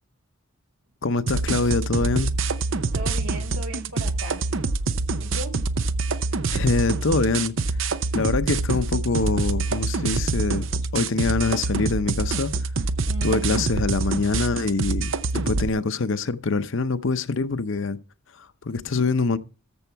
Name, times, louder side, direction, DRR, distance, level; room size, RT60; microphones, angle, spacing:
voice 1, 1.0-2.3 6.5-7.5 8.1-10.7 10.9-12.5 13.2-18.0 18.6-19.4, left 3 dB, 55° left, 0.7 m, -24 dB
sound 1, 1.3-15.7, right 3 dB, 60° right, 0.7 m, -26 dB
voice 2, 2.9-4.5 5.2-5.5 13.1-13.6, right 1 dB, 80° right, 3.7 m, -36 dB
14.0 x 7.0 x 4.6 m
head